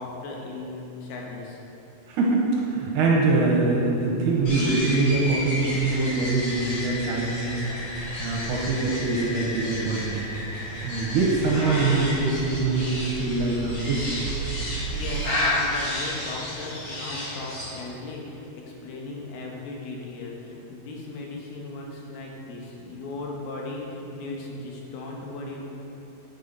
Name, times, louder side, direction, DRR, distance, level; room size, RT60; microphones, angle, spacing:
voice 1, 0.0-1.6 14.7-25.7, left 2 dB, 85° left, -1 dB, 3.1 m, -37 dB
voice 2, 2.1-7.6 8.2-10.3 10.8-14.3, right 3 dB, 70° right, -3 dB, 2.3 m, -24 dB
sound 1, 4.4-15.4, right 7 dB, 90° right, 2.5 m, -39 dB
sound 2, 4.5-17.7, left 1 dB, 40° left, 2.4 m, -32 dB
9.1 x 5.5 x 5.4 m, 3.0 s
omnidirectional pair, 4.4 m